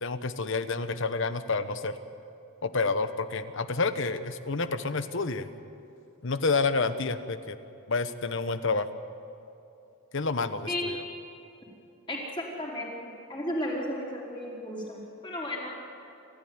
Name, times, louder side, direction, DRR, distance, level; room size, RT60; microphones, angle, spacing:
voice 1, 0.0-2.0 2.6-5.5 6.2-7.6 7.9-8.9 10.1-11.0, left 4 dB, 60° left, 11 dB, 1.0 m, -29 dB
voice 2, 12.1-15.7, left 1 dB, 25° left, -3 dB, 4.6 m, -34 dB
28.5 x 14.0 x 9.6 m, 2.7 s
head